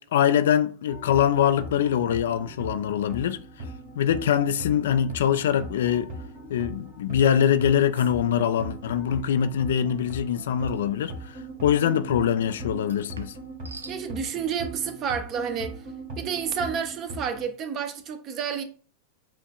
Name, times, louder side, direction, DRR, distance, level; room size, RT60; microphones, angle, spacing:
voice 1, 0.1-3.4 3.9-6.1 6.5-13.3, left 9 dB, 60° left, 0.3 m, -23 dB
sound 1, 0.9-17.5, right 1 dB, 55° right, 1.5 m, -39 dB
sound 2, 7.2-7.5 7.9-8.1 10.7-10.9 12.8-14.0, right 3 dB, 75° right, 0.5 m, -46 dB
voice 2, 13.9-15.8 16.2-18.6, right 7 dB, 35° right, 0.7 m, -30 dB
7.3 x 2.5 x 2.3 m
figure-of-eight pair, 90°, 0 cm